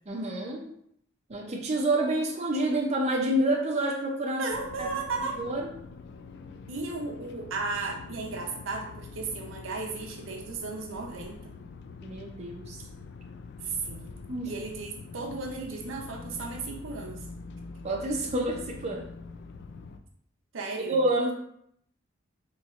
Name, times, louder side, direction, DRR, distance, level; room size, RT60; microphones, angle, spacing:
voice 1, 0.1-0.7 1.3-4.5 4.8-4.9 5.4-5.7 12.0-12.8 14.3-14.5 17.8-19.1 20.8-21.3, right 1 dB, 35° right, 0 dB, 0.5 m, -28 dB
voice 2, 4.4-5.4 6.7-11.5 13.6-14.1 14.4-17.2 20.5-21.0, right 3 dB, 85° right, 1 dB, 0.7 m, -35 dB
sound 1, 4.5-20.0, left 4 dB, 60° left, 0.3 m, -45 dB
4.2 x 3.0 x 2.4 m, 0.70 s
head